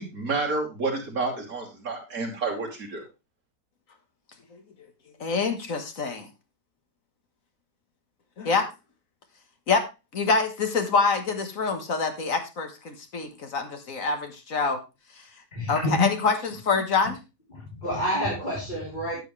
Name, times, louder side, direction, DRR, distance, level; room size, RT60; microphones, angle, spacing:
voice 1, 0.0-3.0, right 3 dB, 55° right, -1 dB, 3.4 m, -30 dB
voice 2, 5.2-6.3 8.4-8.7 9.7-9.8 10.1-14.8 15.7-17.2, left 4 dB, 55° left, 7 dB, 1.7 m, -26 dB
voice 3, 15.5-16.0 17.8-19.2, equal, 25° left, -5 dB, 3.5 m, -28 dB
12.5 x 7.9 x 3.2 m, 0.26 s
omnidirectional pair, 1.8 m